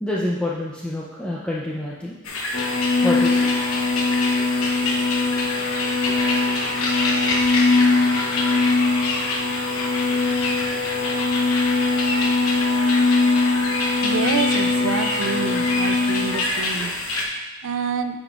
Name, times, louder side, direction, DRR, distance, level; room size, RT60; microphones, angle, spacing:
voice 1, 0.0-2.2 3.0-3.5 6.1-6.2, left 1 dB, 5° left, -5 dB, 0.5 m, -27 dB
sound 1, 2.2-17.2, left 2 dB, 90° left, 0.9 m, -27 dB
sound 2, 2.5-16.5, left 3 dB, 30° left, 0.9 m, -22 dB
voice 2, 10.3-10.7 13.5-13.6 14.0-18.2, right 5 dB, 65° right, 9 dB, 0.4 m, -28 dB
9.2 x 5.0 x 2.4 m, 1.3 s
head